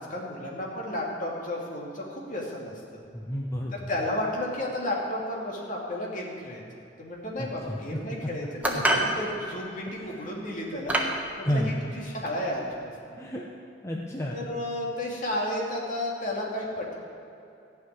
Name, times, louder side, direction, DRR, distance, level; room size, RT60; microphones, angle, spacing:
voice 1, 0.0-3.0 3.7-6.6 7.0-11.0 11.4-12.7 13.1-13.2 14.3-16.9, left 1 dB, 50° left, -2 dB, 2.5 m, -32 dB
voice 2, 3.1-3.7 7.4-7.8 11.4-11.8 13.2-13.5 13.8-14.5, equal, 15° left, -2 dB, 0.9 m, -30 dB
sound 1, 8.6-9.1 10.1-10.3 10.9-11.2, right 1 dB, 10° right, 1.3 m, -25 dB
14.5 x 5.9 x 9.4 m, 2.8 s
head